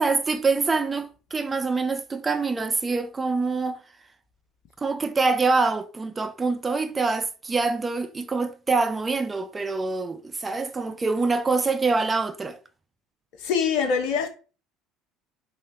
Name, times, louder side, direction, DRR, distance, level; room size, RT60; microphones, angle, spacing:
voice 1, 0.0-3.8 4.8-12.6, right 4 dB, 25° right, 0.5 m, -25 dB
voice 2, 13.4-14.3, left 6 dB, 55° left, 0.7 m, -24 dB
4.3 x 3.4 x 3.0 m
figure-of-eight pair, 60°, 0 cm